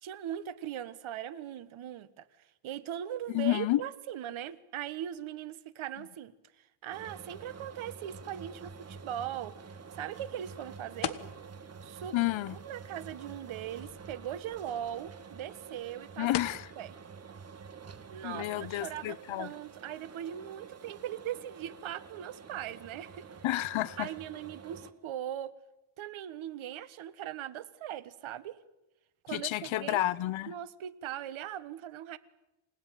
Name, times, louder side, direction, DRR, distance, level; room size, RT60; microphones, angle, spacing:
voice 1, 0.0-2.3 2.6-6.3 6.8-9.6 9.9-11.2 11.8-16.3 16.8-17.0 18.1-23.2 24.0-25.5 26.0-28.6 29.2-30.0 30.5-32.2, right 11 dB, 75° right, 1.5 m, -40 dB
voice 2, 3.3-3.8 12.1-12.6 16.2-16.7 18.2-19.5 23.4-24.1 29.3-30.5, left 16 dB, 75° left, 0.9 m, -30 dB
sound 1, 6.9-20.2, left 10 dB, 55° left, 1.5 m, -47 dB
sound 2, 6.9-24.9, right 5 dB, 30° right, 1.5 m, -49 dB
28.5 x 18.0 x 9.3 m
cardioid pair, 150°, 48 cm